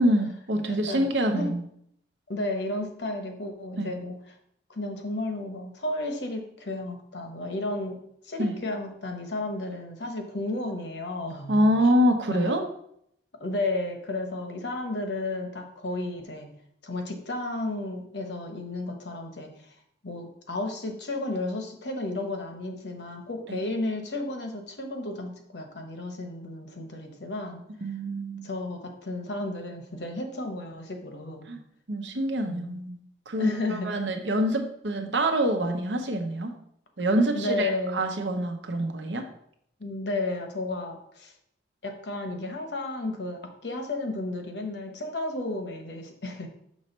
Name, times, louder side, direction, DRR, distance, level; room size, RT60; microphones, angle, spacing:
voice 1, 0.0-1.6 3.8-3.9 8.4-8.6 11.5-12.6 23.5-23.6 27.8-28.5 31.5-31.6 31.9-33.0 33.3-36.5 37.0-39.2, equal, 90° right, 4 dB, 0.9 m, -25 dB
voice 2, 0.7-1.1 1.3-1.5 2.3-4.1 4.7-8.0 8.2-11.7 12.3-12.5 13.4-16.5 16.8-19.7 20.0-27.6 28.4-31.5 32.4-32.7 33.4-33.9 37.3-38.1 39.8-41.3 41.8-46.5, left 2 dB, 70° left, 4 dB, 1.0 m, -33 dB
6.3 x 3.2 x 5.3 m, 0.70 s
head